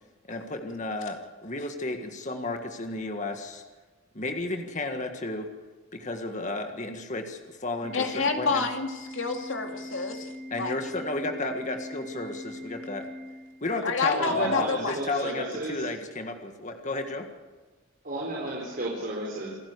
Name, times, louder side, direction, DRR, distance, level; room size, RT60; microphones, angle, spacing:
voice 1, 0.3-3.6 4.1-5.5 5.9-8.7 10.5-13.1 13.6-17.3, left 2 dB, 35° left, 5 dB, 1.7 m, -33 dB
Organ, 7.8-13.8, left 1 dB, 20° right, 2.3 m, -41 dB
voice 2, 7.9-10.3 10.6-10.7 13.8-15.0, left 4 dB, 65° left, 4 dB, 2.5 m, -28 dB
voice 3, 14.1-15.8 18.0-19.5, right 1 dB, 45° right, -4 dB, 4.6 m, -33 dB
27.5 x 12.0 x 8.2 m, 1.3 s
head